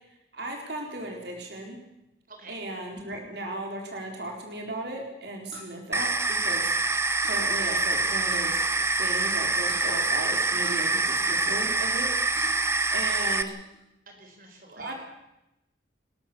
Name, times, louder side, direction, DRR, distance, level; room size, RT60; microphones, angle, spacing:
voice 1, 0.3-1.8 2.5-8.6 9.0-12.4 12.9-13.6 14.8-14.9, right 1 dB, 65° right, 1 dB, 4.0 m, -36 dB
voice 2, 2.3-2.6 14.1-14.9, right 2 dB, 45° right, 4 dB, 4.7 m, -47 dB
sound 1, 5.5-6.9 7.2-7.6 8.3-8.9 9.2-9.3 9.7-10.0 10.6-11.8 12.1-12.6 13.1-13.8, left 2 dB, 25° left, 5.4 m, -46 dB
sound 2, 5.9-13.4, right 3 dB, 15° right, 0.7 m, -25 dB
29.0 x 12.5 x 7.1 m, 0.90 s
head